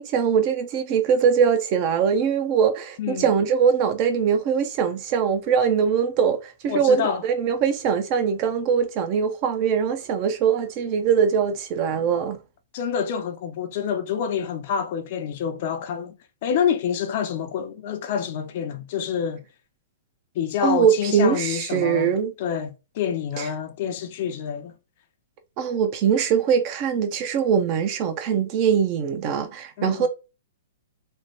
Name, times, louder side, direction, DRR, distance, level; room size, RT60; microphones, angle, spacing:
voice 1, 0.0-12.4 20.6-22.3 23.4-23.5 25.6-30.1, right 7 dB, 40° right, 0.6 m, -22 dB
voice 2, 3.0-3.3 6.7-7.2 12.7-19.4 20.4-22.1 22.4-24.7 29.8-30.1, left 8 dB, 50° left, 0.5 m, -27 dB
3.2 x 2.1 x 2.7 m
hypercardioid pair, 140°, 0 cm